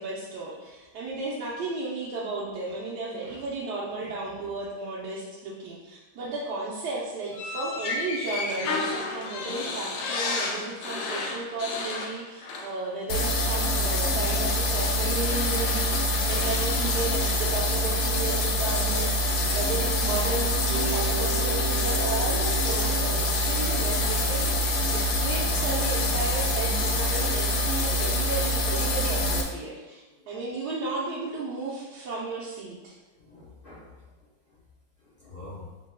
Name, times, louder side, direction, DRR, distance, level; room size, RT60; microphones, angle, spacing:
voice 1, 0.0-32.9, right 3 dB, 65° right, -7 dB, 1.2 m, -34 dB
voice 2, 4.2-4.5 14.1-14.4 30.1-30.2 33.2-33.9 35.0-35.6, left 2 dB, 45° left, -7 dB, 0.7 m, -46 dB
sound 1, 7.3-12.8 13.1-13.3 14.6-14.7 15.3-17.0, left 3 dB, 70° left, 1.1 m, -33 dB
sound 2, 13.1-29.4, left 1 dB, 90° left, 1.5 m, -25 dB
sound 3, 20.7-25.8, right 4 dB, 80° right, 1.5 m, -39 dB
6.1 x 3.7 x 2.2 m, 1.1 s
omnidirectional pair, 2.1 m